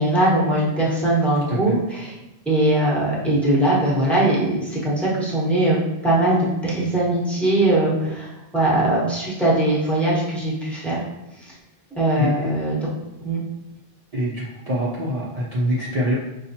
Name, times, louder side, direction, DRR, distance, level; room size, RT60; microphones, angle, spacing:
voice 1, 0.0-2.1 2.5-5.8 6.0-11.0 12.0-12.9 13.2-13.4, right 1 dB, ahead, -6 dB, 1.1 m, -20 dB
voice 2, 12.1-12.5 14.1-16.1, equal, 40° right, -7 dB, 0.7 m, -25 dB
5.6 x 2.3 x 2.7 m, 0.98 s
omnidirectional pair, 1.1 m